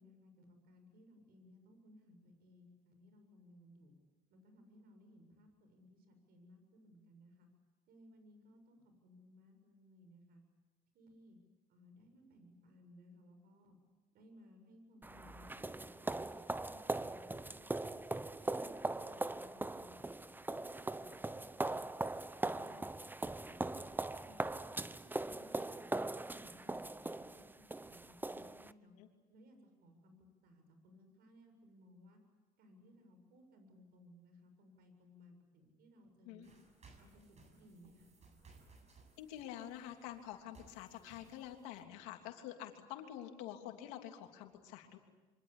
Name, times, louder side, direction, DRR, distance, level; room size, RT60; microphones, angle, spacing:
voice 1, 0.0-3.9 4.3-7.5 7.9-10.4 10.9-11.4 11.7-13.8 14.1-16.2 16.6-18.0 18.4-22.0 22.4-23.9 24.2-25.9 26.3-28.9 29.3-32.2 32.6-36.6 37.0-38.3, left 1 dB, 70° right, 6 dB, 7.4 m, -62 dB
sound 1, 15.0-28.7, right 2 dB, 10° right, 0.9 m, -40 dB
sound 2, 36.4-41.8, right 3 dB, 40° right, 7.0 m, -63 dB
voice 2, 39.2-45.0, left 11 dB, 85° left, 4 dB, 3.1 m, -48 dB
27.0 x 25.0 x 8.5 m, 1.2 s
supercardioid pair, 80°, 17 cm